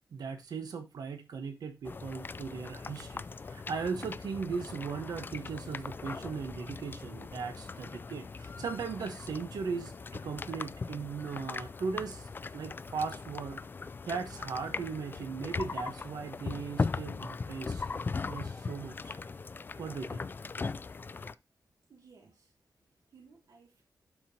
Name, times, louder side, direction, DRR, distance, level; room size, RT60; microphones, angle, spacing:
voice 1, 0.1-13.6 14.1-17.9 18.3-19.2 19.8-20.3, right 5 dB, 85° right, 1.1 m, -38 dB
sound 1, 1.8-21.3, left 4 dB, 30° left, 0.3 m, -39 dB
voice 2, 21.9-23.8, right 5 dB, 65° right, 2.2 m, -60 dB
12.0 x 4.4 x 2.8 m
wide cardioid pair, 135°, 7 cm